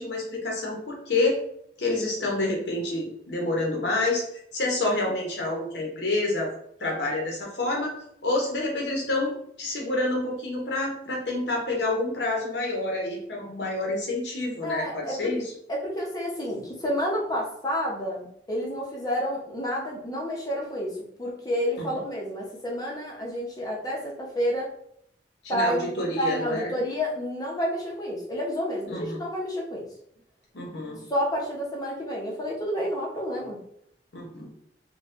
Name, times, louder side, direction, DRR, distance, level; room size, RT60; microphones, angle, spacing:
voice 1, 0.0-1.4 1.8-4.2 4.5-6.5 6.8-7.9 8.2-15.5 21.8-21.9 25.5-26.7 28.9-29.2 30.5-31.0 34.1-34.5, left 2 dB, 70° left, -1 dB, 0.8 m, -28 dB
voice 2, 14.6-15.3 15.7-24.7 25.5-25.9 26.2-29.9 31.1-33.6, equal, 20° left, -2 dB, 0.8 m, -29 dB
4.2 x 2.3 x 2.5 m, 0.71 s
head